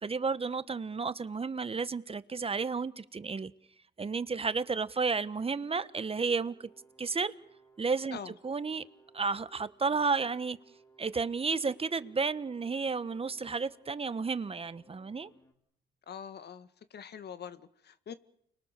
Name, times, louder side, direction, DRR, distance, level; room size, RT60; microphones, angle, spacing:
voice 1, 0.0-3.5 4.0-6.7 7.0-7.3 7.8-8.8 9.1-10.6 11.0-15.3, right 4 dB, 30° right, 15 dB, 1.2 m, -32 dB
sound 1, 5.7-15.5, right 2 dB, 20° left, 6.1 m, -62 dB
voice 2, 16.1-18.1, left 7 dB, 55° left, 12 dB, 1.9 m, -44 dB
30.0 x 22.5 x 6.8 m, 0.70 s
cardioid pair, 90°, 20 cm